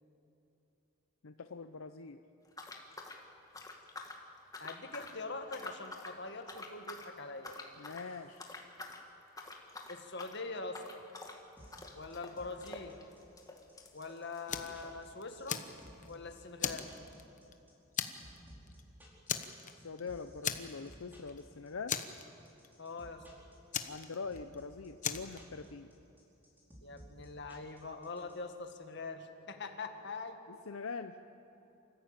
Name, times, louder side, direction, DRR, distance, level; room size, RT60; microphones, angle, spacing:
voice 1, 1.2-2.2 7.8-8.4 19.8-22.0 23.9-25.9 30.5-31.2, left 4 dB, 85° left, 8 dB, 0.7 m, -43 dB
sound 1, 2.5-4.2 4.5-5.2 5.5-6.2 6.5-7.1 7.4-8.1 8.4-9.0 9.3-15.0 15.3-15.4 15.6-15.7 16.3-16.4, left 2 dB, 15° left, 1.8 m, -48 dB
voice 2, 4.6-7.6 9.9-11.0 11.9-13.0 13.9-15.6 16.1-16.9 22.8-23.3 26.8-30.4, left 3 dB, 55° left, 6 dB, 1.8 m, -43 dB
sound 2, 11.6-28.3, equal, 10° right, 4.6 m, -56 dB
Fire, 14.5-14.8 15.2-16.1 16.6-17.5 18.0-18.4 18.7-18.8 19.3-20.0 20.4-21.0 21.3-21.4 21.9-22.7 23.7-24.6 25.0-25.4, left 8 dB, 40° left, 1.1 m, -37 dB
27.0 x 14.5 x 8.8 m, 3.0 s
head